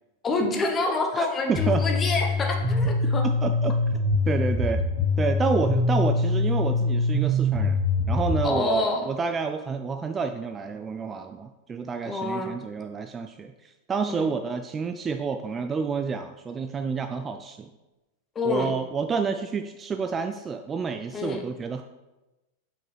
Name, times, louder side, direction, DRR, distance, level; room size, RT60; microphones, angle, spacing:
voice 1, 0.2-3.3 8.4-9.1 12.0-12.5 14.1-14.3 18.3-18.7 21.1-21.4, left 3 dB, 20° left, 3 dB, 0.9 m, -27 dB
voice 2, 1.1-1.8 3.4-3.7 4.3-4.8 5.2-7.8 8.1-17.7 18.4-21.8, right 5 dB, 20° right, 7 dB, 0.3 m, -29 dB
sound 1, 1.5-8.4, left 2 dB, 80° right, 2.1 m, -24 dB
5.9 x 5.0 x 3.3 m, 1.0 s
figure-of-eight pair, 90°, 0 cm